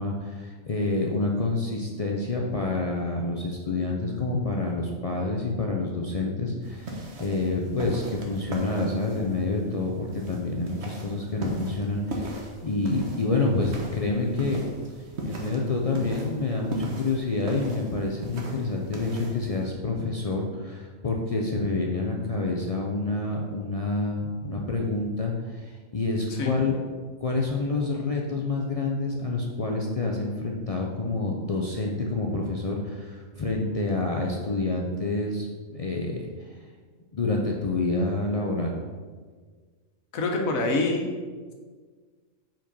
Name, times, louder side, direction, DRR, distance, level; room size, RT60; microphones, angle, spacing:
voice 1, 0.0-14.7 15.2-26.8 27.2-36.5 37.1-38.7, left 3 dB, 60° left, -1 dB, 0.3 m, -28 dB
sound 1, 6.6-19.7, right 1 dB, 55° right, 1.2 m, -38 dB
voice 2, 40.1-41.1, left 2 dB, 85° left, 2 dB, 1.4 m, -25 dB
5.0 x 4.4 x 5.3 m, 1.5 s
omnidirectional pair, 1.4 m